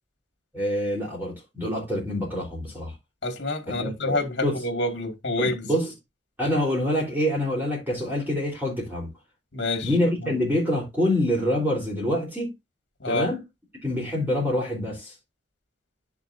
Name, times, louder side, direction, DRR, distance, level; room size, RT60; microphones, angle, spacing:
voice 1, 0.5-2.9 3.7-4.5 5.4-5.9 6.4-9.1 9.8-12.5 13.1-13.4 13.8-15.1, left 1 dB, 10° right, 3.8 m, -26 dB
voice 2, 3.2-5.7 6.4-6.5 9.5-10.0 10.2-10.4 13.0-13.3, left 2 dB, 65° left, 2.3 m, -28 dB
10.5 x 6.4 x 2.6 m
head